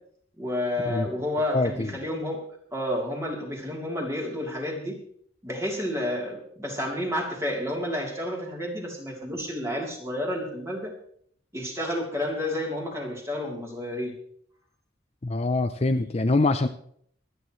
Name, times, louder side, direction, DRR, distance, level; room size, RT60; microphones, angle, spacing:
voice 1, 0.4-2.4 2.7-5.0 5.4-10.9 11.5-14.1, left 1 dB, 15° right, -1 dB, 3.3 m, -30 dB
voice 2, 1.5-1.9 15.2-16.7, left 2 dB, 35° left, 8 dB, 0.6 m, -24 dB
25.5 x 9.8 x 3.2 m, 0.63 s
head